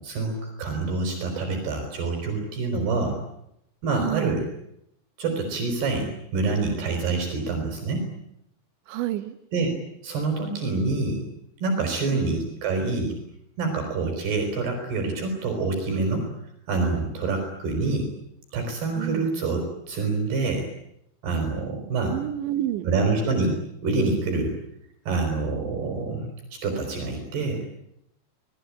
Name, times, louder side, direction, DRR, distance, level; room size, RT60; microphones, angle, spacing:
voice 1, 0.0-3.2 3.8-4.4 5.2-8.1 9.5-9.7 10.0-11.2 11.6-13.2 13.6-16.3 16.7-18.1 18.5-20.7 21.2-22.2 22.8-24.5 25.1-26.3 26.6-27.6, right 3 dB, 60° right, 4 dB, 6.7 m, -26 dB
voice 2, 3.9-4.3 8.9-9.4 12.1-12.3 19.0-19.3 22.0-22.9, right 13 dB, 85° right, 11 dB, 3.7 m, -29 dB
29.0 x 20.5 x 8.7 m, 0.79 s
omnidirectional pair, 5.2 m